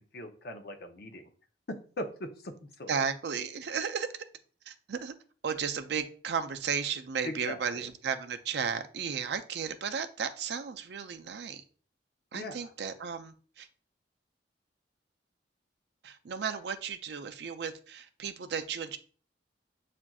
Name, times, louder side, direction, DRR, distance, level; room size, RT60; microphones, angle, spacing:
voice 1, 0.1-1.2 2.0-3.0 7.2-7.9 12.3-12.7, left 1 dB, 60° left, 5 dB, 0.6 m, -40 dB
voice 2, 2.9-4.2 4.7-5.1 5.4-11.6 12.3-13.7 16.0-19.0, right 6 dB, 65° right, 8 dB, 0.4 m, -34 dB
7.1 x 2.5 x 2.3 m, 0.41 s
head